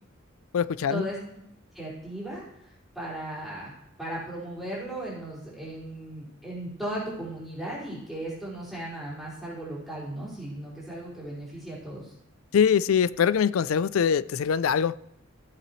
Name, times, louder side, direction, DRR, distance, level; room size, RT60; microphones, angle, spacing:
voice 1, 0.5-1.0 12.5-14.9, left 7 dB, 90° left, 0.4 m, -23 dB
voice 2, 1.7-12.1, right 1 dB, ahead, 4.7 m, -36 dB
16.0 x 7.7 x 3.1 m
head